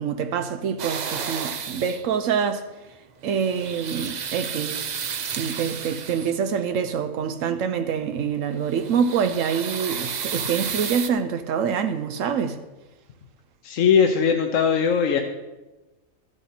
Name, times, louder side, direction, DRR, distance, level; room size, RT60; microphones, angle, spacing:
voice 1, 0.0-2.7 3.2-4.9 5.4-12.6, right 7 dB, 80° right, 1.0 m, -26 dB
sound 1, 0.8-2.1 3.2-6.5 8.5-11.1, right 7 dB, 50° right, 0.5 m, -32 dB
voice 2, 13.6-15.2, left 6 dB, 75° left, 1.1 m, -19 dB
13.0 x 8.1 x 4.3 m
omnidirectional pair, 1.3 m